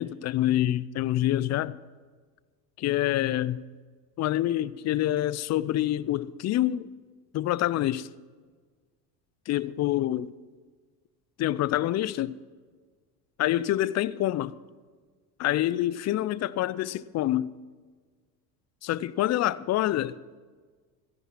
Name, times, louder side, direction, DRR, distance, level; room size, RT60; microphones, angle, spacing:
voice 1, 0.0-1.8 2.8-3.6 4.2-6.9 7.3-8.1 9.5-10.3 11.4-12.4 13.4-14.6 15.4-17.5 18.8-20.4, left 13 dB, 35° left, 0.5 m, -26 dB
14.0 x 10.5 x 5.9 m
hypercardioid pair, 75°, 48 cm